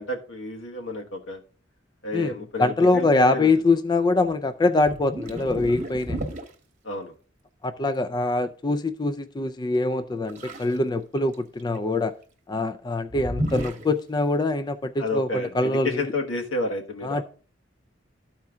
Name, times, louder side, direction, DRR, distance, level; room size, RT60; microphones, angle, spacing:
voice 1, 0.0-1.4 2.0-3.5 6.8-7.1 15.0-17.2, left 2 dB, 90° left, 1.3 m, -30 dB
voice 2, 2.1-6.2 7.6-12.1 12.5-15.9 17.0-17.2, left 2 dB, 20° left, 0.3 m, -23 dB
sound 1, 4.8-6.5 10.3-10.8 11.1-11.8 13.1-13.9, equal, 40° right, 1.0 m, -32 dB
12.5 x 4.4 x 3.6 m
head